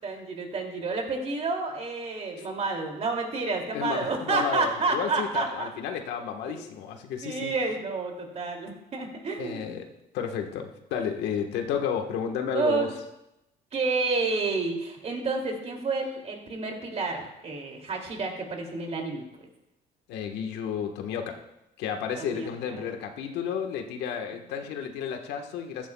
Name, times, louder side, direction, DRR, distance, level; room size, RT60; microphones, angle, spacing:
voice 1, 0.0-5.7 6.5-6.6 7.2-9.7 12.5-12.9 13.7-19.2 22.2-22.8, right 3 dB, 40° right, 2 dB, 2.7 m, -30 dB
voice 2, 3.7-7.5 9.4-9.8 10.1-12.9 20.1-21.4 21.8-25.9, left 7 dB, 90° left, 4 dB, 1.4 m, -32 dB
15.0 x 13.0 x 2.3 m, 0.89 s
cardioid pair, 110°, 17 cm